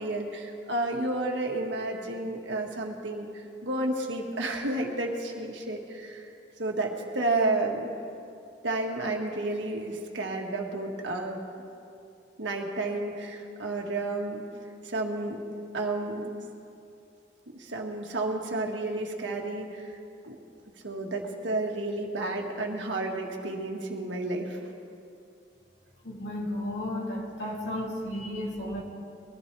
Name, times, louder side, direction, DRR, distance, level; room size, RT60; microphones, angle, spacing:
voice 1, 0.0-6.3 6.6-7.9 8.6-11.4 12.4-14.4 14.8-15.4 15.7-16.3 17.5-20.0 20.2-20.4 20.8-24.7, right 2 dB, 75° right, 1 dB, 1.7 m, -31 dB
voice 2, 26.0-28.8, left 1 dB, 70° left, -3 dB, 2.8 m, -33 dB
22.0 x 14.5 x 3.4 m, 2.6 s
head